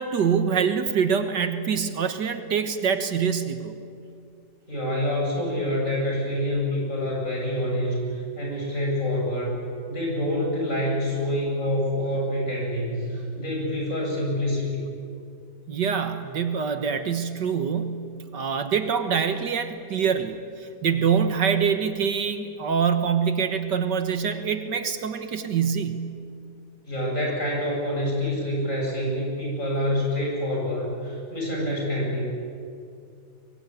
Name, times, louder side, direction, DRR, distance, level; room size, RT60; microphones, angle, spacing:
voice 1, 0.0-3.8 15.7-26.1, right 6 dB, 70° right, 8 dB, 1.9 m, -25 dB
voice 2, 4.7-9.6 9.9-14.8 26.9-32.2, left 1 dB, 45° left, -2 dB, 8.4 m, -27 dB
23.5 x 23.0 x 9.4 m, 2.4 s
omnidirectional pair, 2.0 m